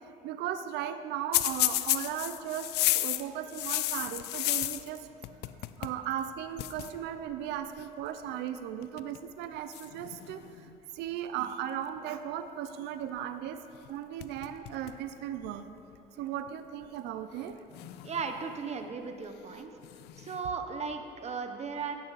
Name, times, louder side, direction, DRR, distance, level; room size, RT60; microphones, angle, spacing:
voice 1, 0.2-5.0 5.8-10.4 10.9-13.6 13.9-15.6 16.2-17.6, right 10 dB, 85° right, 9 dB, 0.6 m, -36 dB
sound 1, 1.3-5.0 5.2-6.0 6.2-6.3 6.6-6.9 7.8-8.1 8.8-9.2 9.7-10.8 13.7-13.9 14.2-15.0 15.4-15.5 16.5-16.6 17.7-18.6 19.8-20.4, left 16 dB, 80° left, 0.5 m, -32 dB
voice 2, 18.0-19.7 20.2-22.0, right 5 dB, 40° right, 6 dB, 0.9 m, -36 dB
15.5 x 11.0 x 4.1 m, 2.8 s
cardioid pair, 110°, 17 cm